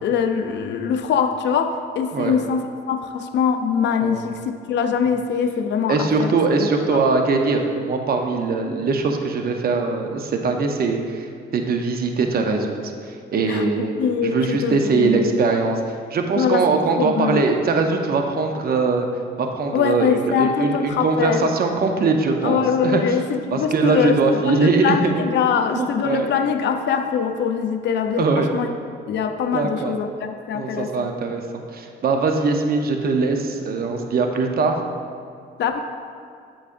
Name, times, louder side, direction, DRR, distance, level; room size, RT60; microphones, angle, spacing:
voice 1, 0.0-6.3 6.6-7.0 13.5-15.2 16.3-16.6 17.0-17.4 19.7-21.5 22.4-28.7 29.1-31.1 35.6-35.8, left 7 dB, 65° left, 5 dB, 0.5 m, -23 dB
voice 2, 5.9-11.3 11.5-13.9 14.2-15.8 16.1-19.1 19.4-23.0 23.5-25.2 25.7-26.3 28.2-28.5 29.5-30.0 30.5-34.8, right 4 dB, 50° right, 4 dB, 0.7 m, -21 dB
8.4 x 7.8 x 2.6 m, 2.4 s
cardioid pair, 90°, 20 cm